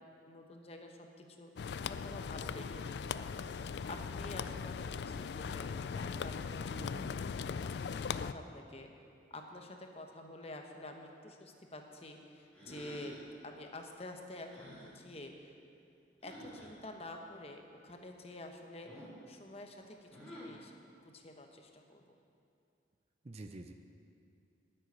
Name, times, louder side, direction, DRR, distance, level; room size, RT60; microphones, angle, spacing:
voice 1, 0.3-7.0 7.4-8.9 9.3-13.2 13.4-15.5 16.2-20.7 21.0-22.1, left 1 dB, 35° left, 4 dB, 1.0 m, -49 dB
sound 1, 1.6-8.3, left 6 dB, 65° left, 0.3 m, -39 dB
voice 2, 6.7-7.1 23.2-23.7, right 2 dB, 35° right, 7 dB, 0.5 m, -47 dB
sound 2, 12.5-13.3 14.4-14.9 16.2-16.7 18.8-19.2 20.1-20.6, equal, 5° left, 3.5 m, -50 dB
10.5 x 7.9 x 9.7 m, 2.5 s
head